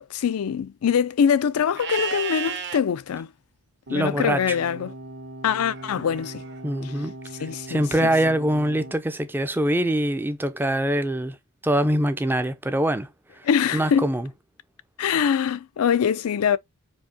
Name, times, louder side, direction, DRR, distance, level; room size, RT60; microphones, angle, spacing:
voice 1, 0.0-3.3 3.9-4.9 5.4-6.4 6.8-6.9 7.4-8.1 13.4-14.1 15.0-16.6, left 7 dB, 85° left, 0.4 m, -23 dB
Livestock farm animals working animals, 1.7-2.8 5.6-6.6, right 6 dB, 50° right, 0.7 m, -32 dB
voice 2, 3.9-4.6 6.6-7.1 7.7-11.4 11.6-13.1 13.7-14.3, right 1 dB, 10° right, 0.3 m, -23 dB
sound 1, 3.9-8.9, right 1 dB, 80° right, 1.5 m, -40 dB
4.7 x 2.7 x 2.6 m
head